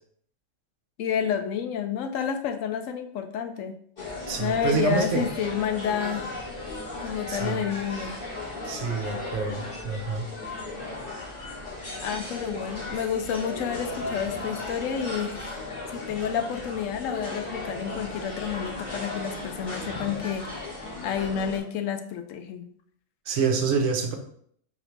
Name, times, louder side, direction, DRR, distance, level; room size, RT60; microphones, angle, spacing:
voice 1, 1.0-3.8 4.4-6.3 7.0-8.1 12.0-15.5 15.9-20.7 21.0-22.7, left 8 dB, 80° left, 8 dB, 0.9 m, -30 dB
sound 1, 4.0-21.6, left 2 dB, 45° left, 1.5 m, -36 dB
voice 2, 4.3-5.2 7.3-7.6 8.6-10.2 23.3-24.2, right 5 dB, 70° right, 3 dB, 1.1 m, -27 dB
4.2 x 2.6 x 4.5 m, 0.63 s
omnidirectional pair, 1.4 m